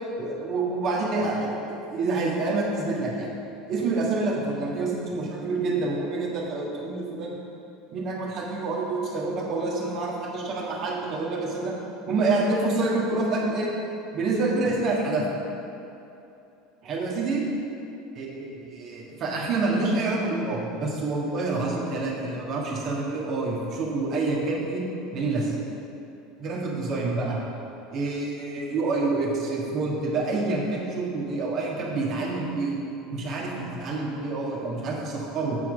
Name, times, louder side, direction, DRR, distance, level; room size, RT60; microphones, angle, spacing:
voice 1, 0.2-3.3 3.7-7.4 7.9-11.8 12.1-13.7 14.1-15.3 16.8-17.4 18.2-24.8 25.1-25.5 26.4-27.4 27.9-32.8 33.1-35.6, right 3 dB, 50° right, -2 dB, 1.6 m, -27 dB
8.3 x 4.6 x 5.2 m, 2.8 s
hypercardioid pair, 80°, 0 cm